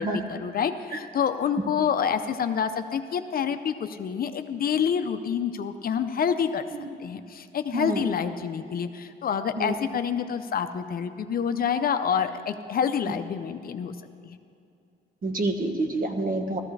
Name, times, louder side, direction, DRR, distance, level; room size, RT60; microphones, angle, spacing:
voice 1, 0.0-6.6 7.0-13.9 14.2-14.4, left 7 dB, 50° left, 9 dB, 0.6 m, -27 dB
voice 2, 7.7-8.2 9.6-9.7 15.2-16.6, right 2 dB, 45° right, 4 dB, 1.4 m, -28 dB
15.0 x 14.0 x 3.3 m, 2.5 s
cardioid pair, 90°, 20 cm